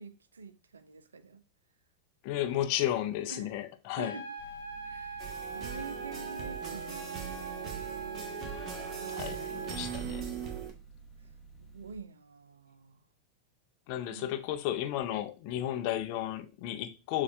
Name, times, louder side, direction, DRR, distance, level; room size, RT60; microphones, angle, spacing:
voice 1, 0.0-1.4 3.3-3.5 3.9-4.3 4.8-7.8 9.0-10.2 11.6-13.0 14.1-14.3, right 4 dB, 70° right, 0.4 m, -48 dB
voice 2, 2.2-4.1 9.1-10.3 13.9-17.2, left 12 dB, 45° left, 0.5 m, -33 dB
sound 1, 4.0-10.0, right 3 dB, 70° left, 1.0 m, -42 dB
sound 2, 4.4-12.0, right 4 dB, 10° left, 1.0 m, -53 dB
sound 3, 5.2-10.7, right 8 dB, 30° right, 1.2 m, -39 dB
6.6 x 2.4 x 3.3 m
figure-of-eight pair, 90°, 0 cm